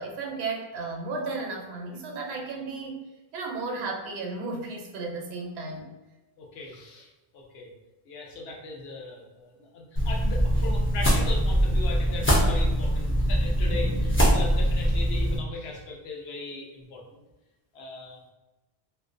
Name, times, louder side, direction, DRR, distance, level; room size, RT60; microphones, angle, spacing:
voice 1, 0.0-3.0 3.3-5.9, right 3 dB, 80° right, 1 dB, 0.8 m, -34 dB
voice 2, 6.4-7.7 8.1-17.2 17.7-18.2, left 3 dB, 75° left, 0 dB, 0.8 m, -39 dB
sound 1, 10.0-15.4, equal, 20° left, 0.3 m, -23 dB
2.4 x 2.1 x 2.4 m, 1.1 s
omnidirectional pair, 1.1 m